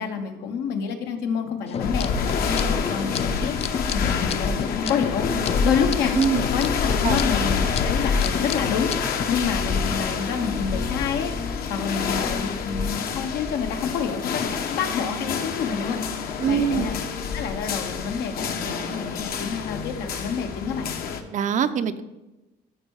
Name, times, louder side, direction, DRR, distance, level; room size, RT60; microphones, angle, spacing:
voice 1, 0.0-3.5 3.9-6.1 6.5-9.0 9.3-17.0 17.3-21.0, left 6 dB, 85° left, 5 dB, 1.1 m, -28 dB
sound 1, 1.7-9.3, left 8 dB, 35° left, 0.4 m, -32 dB
sound 2, 1.8-21.2, left 5 dB, 65° left, 0.9 m, -27 dB
voice 2, 6.2-6.5 7.0-7.2 16.4-16.9 21.3-22.0, right 8 dB, 50° right, 11 dB, 0.6 m, -23 dB
13.5 x 4.4 x 4.8 m, 1.0 s
cardioid pair, 110°, 17 cm